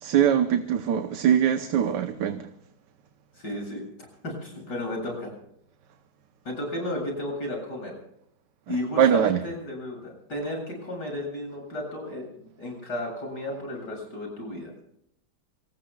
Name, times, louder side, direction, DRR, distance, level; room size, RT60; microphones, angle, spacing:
voice 1, 0.0-2.4 8.7-9.4, right 9 dB, 85° right, 1.5 m, -22 dB
voice 2, 3.4-3.9 4.2-5.3 6.4-7.9 8.7-14.7, left 1 dB, 80° left, 8.3 m, -33 dB
27.0 x 20.0 x 2.4 m
omnidirectional pair, 1.8 m